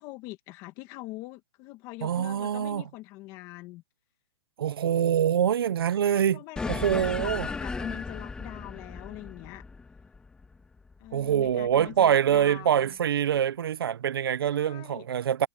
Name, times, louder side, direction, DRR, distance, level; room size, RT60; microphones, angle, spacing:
voice 1, 0.0-3.8 6.1-9.7 11.0-12.9 14.5-15.1, left 19 dB, 30° left, 1.7 m, -43 dB
voice 2, 2.0-2.8 4.6-6.4 6.7-7.5 11.1-15.5, right 9 dB, 85° right, 1.0 m, -25 dB
sound 1, 6.6-11.3, left 4 dB, 5° left, 1.8 m, -36 dB
hypercardioid pair, 160°, 12 cm